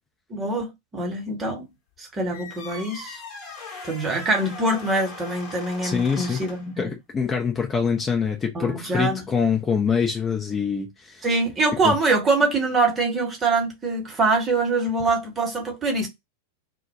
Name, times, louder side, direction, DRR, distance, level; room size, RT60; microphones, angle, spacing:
voice 1, 0.3-1.7 2.0-3.2 3.8-6.9 8.5-9.2 11.2-16.1, right 3 dB, 20° right, 0.9 m, -24 dB
sound 1, 2.3-6.8, left 4 dB, 35° left, 1.0 m, -40 dB
voice 2, 5.8-6.4 6.8-11.3 11.8-12.0, left 6 dB, 20° left, 0.5 m, -24 dB
2.1 x 2.1 x 2.8 m
figure-of-eight pair, 90°, 0 cm